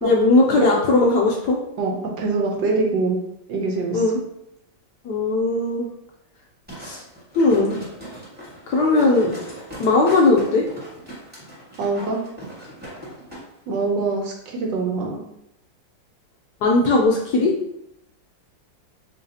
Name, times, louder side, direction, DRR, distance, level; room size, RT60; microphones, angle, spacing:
voice 1, 0.0-1.6 3.9-4.2 5.0-5.9 6.8-7.0 7.3-7.8 8.7-9.3 9.8-10.7 16.6-17.5, left 2 dB, 70° left, -1 dB, 1.0 m, -18 dB
voice 2, 1.8-3.2 3.5-4.0 11.8-12.2 13.7-15.2, right 3 dB, 70° right, 1 dB, 1.3 m, -24 dB
sound 1, 6.7-13.4 13.8-13.9, equal, 5° right, 1.1 m, -39 dB
4.1 x 3.2 x 2.7 m, 0.80 s
omnidirectional pair, 2.2 m